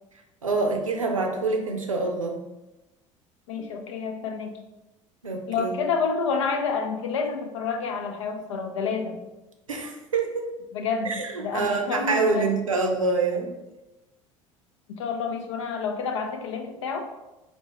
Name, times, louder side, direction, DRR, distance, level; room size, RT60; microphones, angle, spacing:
voice 1, 0.4-2.4 5.2-5.8 9.7-10.5 11.0-13.5, right 3 dB, 85° right, 3 dB, 0.5 m, -26 dB
voice 2, 3.5-4.5 5.5-9.2 10.7-12.5 14.9-17.1, left 5 dB, 65° left, 5 dB, 0.5 m, -29 dB
4.4 x 3.0 x 2.9 m, 1.0 s
figure-of-eight pair, 65°, 17 cm